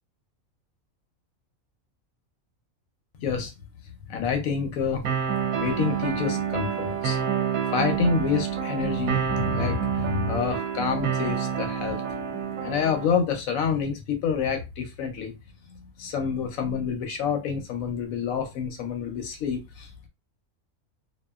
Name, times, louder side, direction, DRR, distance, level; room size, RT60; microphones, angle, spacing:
voice 1, 3.2-3.5 4.1-5.0 5.6-7.2 7.7-12.0 12.6-15.3 15.7-20.1, left 6 dB, 80° left, 1.0 m, -28 dB
sound 1, 5.0-13.1, right 8 dB, 85° right, 1.0 m, -28 dB
2.8 x 2.4 x 2.3 m
omnidirectional pair, 1.4 m